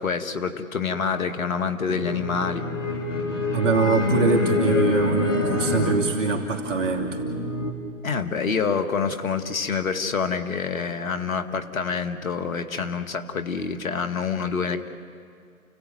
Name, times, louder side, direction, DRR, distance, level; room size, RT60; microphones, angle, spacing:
voice 1, 0.0-2.6 8.0-14.9, left 5 dB, 70° left, 8 dB, 2.2 m, -27 dB
sound 1, 1.9-7.7, left 3 dB, 55° left, 4.0 m, -26 dB
voice 2, 3.5-7.2, right 4 dB, 55° right, 1 dB, 2.9 m, -23 dB
29.0 x 17.0 x 9.3 m, 2.2 s
figure-of-eight pair, 135°, 43 cm